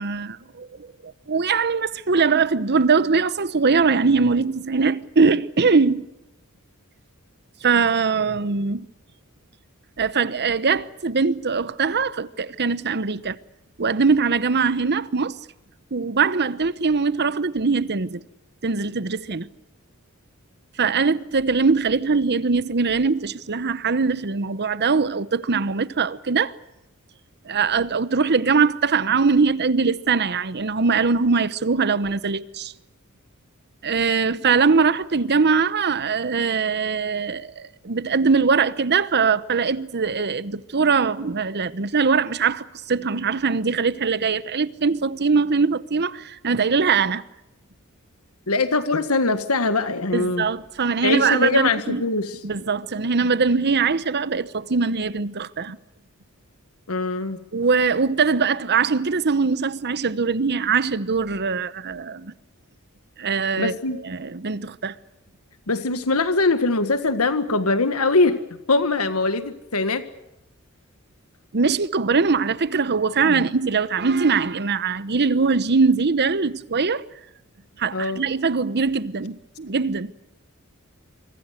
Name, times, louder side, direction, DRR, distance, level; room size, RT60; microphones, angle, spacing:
voice 1, 0.0-6.1 7.6-8.9 10.0-13.4 13.8-15.4 15.9-18.2 18.6-19.5 20.8-26.5 27.5-32.7 33.8-47.2 50.1-52.0 52.4-55.8 57.5-62.3 63.2-63.7 64.0-65.0 71.5-77.0 77.8-80.1, right 5 dB, 50° right, 1.0 m, -22 dB
voice 2, 48.5-50.5 51.0-52.4 56.9-57.4 63.6-64.0 65.7-68.4 68.7-70.0 73.2-73.5 77.9-78.2, left 3 dB, 85° left, 1.7 m, -22 dB
26.0 x 24.0 x 6.6 m
head